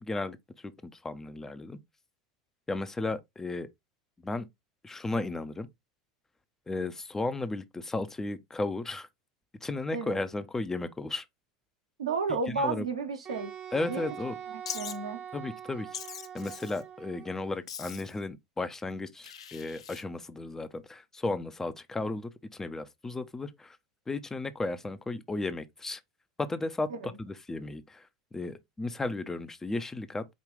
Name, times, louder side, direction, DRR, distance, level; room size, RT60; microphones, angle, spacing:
voice 1, 0.0-1.8 2.7-3.7 4.2-4.5 4.8-5.7 6.7-9.1 9.6-11.2 12.5-12.9 13.7-14.4 15.3-15.9 16.3-23.8 24.1-26.0 26.4-30.3, left 2 dB, 15° left, 0.5 m, -34 dB
voice 2, 12.0-13.5 13.9-14.1 14.7-15.2 26.9-27.1, right 4 dB, 80° right, 1.0 m, -32 dB
Wind instrument woodwind instrument, 13.2-17.5, right 9 dB, 40° right, 0.9 m, -43 dB
Wild animals, 14.7-15.0 15.9-16.8 17.7-18.2 19.2-20.0, left 8 dB, 75° left, 0.5 m, -41 dB
5.0 x 2.4 x 3.7 m
figure-of-eight pair, 75°, 3 cm